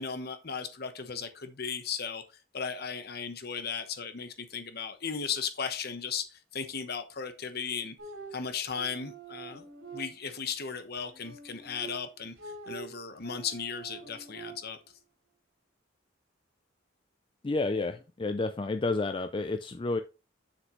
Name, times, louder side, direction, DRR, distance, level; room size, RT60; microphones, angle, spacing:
voice 1, 0.0-2.2 2.5-7.9 8.3-9.6 9.9-12.3 12.7-14.8, left 6 dB, 50° left, 1.1 m, -36 dB
sound 1, 8.0-10.5 11.0-14.9, right 4 dB, 85° right, 3.1 m, -46 dB
voice 2, 17.4-20.0, left 3 dB, 25° left, 0.4 m, -30 dB
7.5 x 6.6 x 3.1 m
head